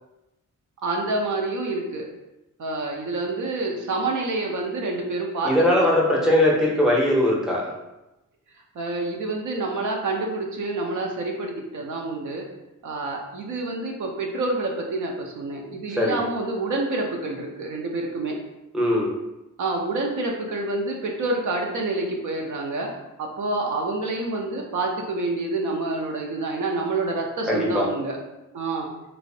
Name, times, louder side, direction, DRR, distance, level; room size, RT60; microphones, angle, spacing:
voice 1, 0.8-2.1 2.6-5.9 8.8-12.4 12.8-18.4 19.6-22.9 23.2-28.2 28.5-28.9, right 2 dB, 70° right, 0 dB, 0.5 m, -27 dB
voice 2, 5.4-7.7 16.0-16.2 18.7-19.1 27.5-27.8, left 1 dB, ahead, -3 dB, 0.6 m, -20 dB
2.5 x 2.0 x 2.6 m, 0.96 s
cardioid pair, 85°, 32 cm